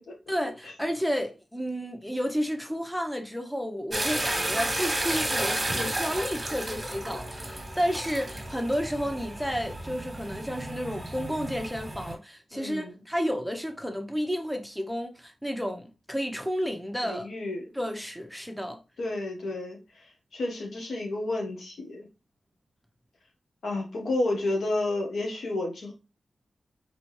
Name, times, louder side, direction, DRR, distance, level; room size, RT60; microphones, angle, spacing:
voice 1, 0.3-17.3 17.7-18.8, equal, ahead, 0.9 m, -31 dB
sound 1, 3.9-12.1, right 1 dB, 25° right, 1.5 m, -32 dB
voice 2, 12.5-13.0 17.0-17.8 19.0-22.1 23.6-25.9, left 2 dB, 80° left, 1.4 m, -31 dB
4.0 x 3.5 x 3.2 m
cardioid pair, 45°, 0 cm